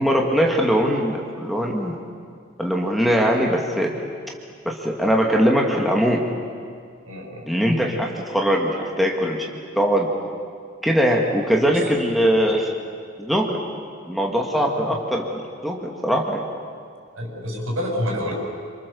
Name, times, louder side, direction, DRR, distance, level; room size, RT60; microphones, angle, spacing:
voice 1, 0.0-2.0 2.6-3.9 4.7-6.3 7.5-9.5 9.8-10.1 10.8-12.7 13.2-13.6 14.1-16.4, equal, ahead, -1 dB, 2.1 m, -21 dB
voice 2, 7.1-7.5 11.7-11.8 17.2-18.3, equal, 80° right, 0 dB, 7.4 m, -28 dB
28.0 x 26.0 x 7.1 m, 2.1 s
head